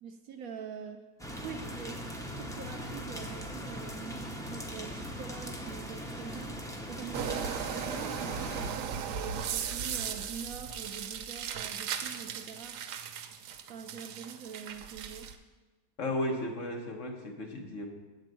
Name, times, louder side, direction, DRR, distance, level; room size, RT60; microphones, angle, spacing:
voice 1, 0.0-1.0 1.4-6.6 6.9-12.8 13.7-15.3, right 6 dB, 70° right, 6 dB, 1.0 m, -44 dB
sound 1, 1.2-8.7, equal, 5° left, 0.4 m, -40 dB
sound 2, 7.1-15.4, right 8 dB, 90° right, 1.2 m, -37 dB
voice 2, 16.0-17.9, left 1 dB, 55° left, 1 dB, 1.4 m, -34 dB
7.9 x 5.3 x 7.5 m, 1.3 s
omnidirectional pair, 1.7 m